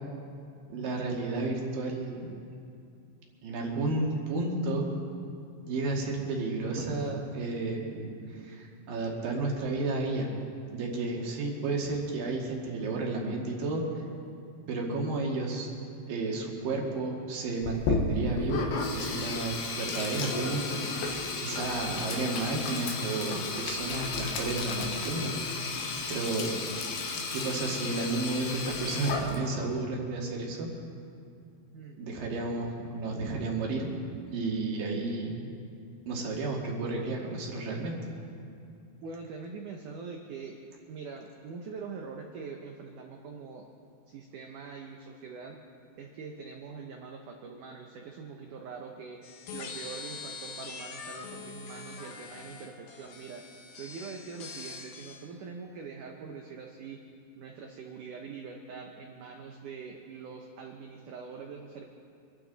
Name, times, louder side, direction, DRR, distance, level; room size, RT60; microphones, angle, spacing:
voice 1, 0.7-2.3 3.4-4.9 5.6-10.3 10.7-14.0 14.7-15.7 16.1-26.6 27.1-30.7 32.0-33.9 34.3-35.4 36.1-38.0, right 3 dB, 60° right, -1 dB, 3.4 m, -32 dB
Sink (filling or washing), 17.6-29.7, left 4 dB, 80° left, 3.4 m, -33 dB
voice 2, 39.0-40.6 40.9-43.7 44.1-45.6 46.0-49.2 49.5-53.5 53.8-57.0 57.4-61.8, right 5 dB, 85° right, 2 dB, 1.8 m, -43 dB
sound 1, 49.2-55.2, left 4 dB, 65° left, 2.8 m, -43 dB
25.5 x 13.0 x 4.0 m, 2.5 s
omnidirectional pair, 4.9 m